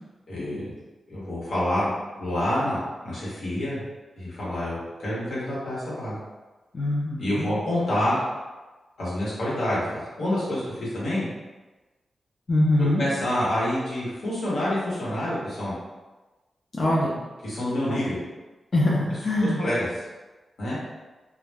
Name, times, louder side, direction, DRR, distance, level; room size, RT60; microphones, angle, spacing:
voice 1, 0.3-0.7 1.1-1.9 2.2-2.8 3.0-3.8 4.2-6.2 7.2-8.2 9.0-11.2 12.8-15.7 17.4-18.2 19.4-19.9 20.6-20.8, left 1 dB, 85° left, -8 dB, 1.1 m, -27 dB
voice 2, 6.7-7.6 12.5-13.0 16.7-17.1 17.9-18.0 18.7-19.6, left 1 dB, 45° left, -7 dB, 0.5 m, -23 dB
2.3 x 2.0 x 3.3 m, 1.2 s
wide cardioid pair, 115°, 0 cm